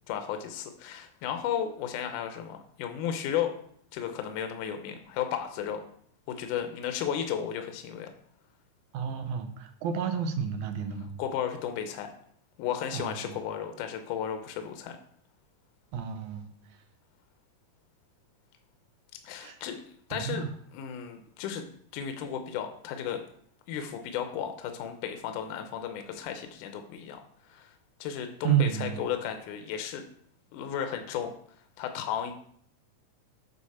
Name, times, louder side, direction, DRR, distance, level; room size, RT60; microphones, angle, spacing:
voice 1, 0.1-3.6 3.9-5.8 6.4-8.1 11.2-12.1 12.6-15.0 19.2-19.8 20.1-20.4 20.7-21.6 21.9-23.2 23.7-27.2 27.5-27.7 28.0-30.0 30.5-31.3 31.8-32.3, left 9 dB, 80° left, 6 dB, 2.2 m, -34 dB
voice 2, 8.9-11.1 12.9-13.4 15.9-16.5 19.4-19.6 20.1-20.5 28.4-29.0, right 8 dB, 75° right, 6 dB, 2.1 m, -30 dB
8.1 x 4.9 x 4.2 m, 0.63 s
omnidirectional pair, 3.7 m